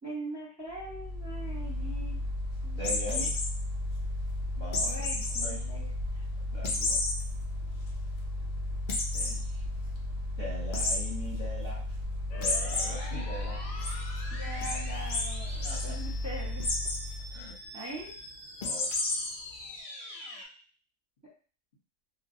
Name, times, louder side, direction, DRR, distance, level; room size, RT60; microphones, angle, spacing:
voice 1, 0.0-2.2 2.6-3.3 4.8-6.2 14.3-16.7 17.7-18.1 21.2-21.3, right 1 dB, 15° right, -8 dB, 0.7 m, -42 dB
Mechanical fan, 0.7-17.6, left 1 dB, 70° right, 0.9 m, -35 dB
voice 2, 2.7-3.3 4.6-5.1 5.4-5.7 6.5-7.0 9.1-9.6 10.4-11.8 12.3-14.2 15.6-15.8 17.3-17.5 18.6-18.9, left 1 dB, 40° left, -8 dB, 0.9 m, -41 dB
sound 1, 2.8-3.5 4.7-5.5 5.9-6.0 6.6-7.1 7.6-7.7 8.0-8.1 8.9-9.3 10.7-11.0 12.4-12.8 13.3-13.9 14.6-14.7 15.1-15.2 15.5-15.8 16.6-17.0 18.6-19.3, left 3 dB, 65° left, 0.5 m, -30 dB
sound 2, 12.3-20.5, left 2 dB, 90° left, 1.0 m, -45 dB
2.3 x 2.0 x 2.7 m, 0.39 s
omnidirectional pair, 1.4 m